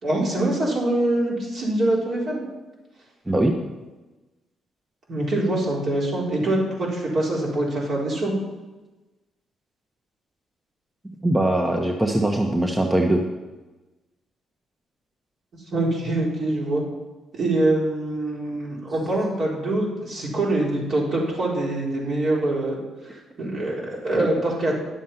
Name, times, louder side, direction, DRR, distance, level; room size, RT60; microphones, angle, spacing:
voice 1, 0.0-2.4 5.1-8.3 15.7-16.8 17.3-22.8 23.4-24.7, right 1 dB, 55° right, -3 dB, 4.1 m, -24 dB
voice 2, 11.2-13.2, right 1 dB, 15° right, 3 dB, 1.0 m, -21 dB
10.5 x 7.3 x 5.7 m, 1.1 s
cardioid pair, 90°, 0 cm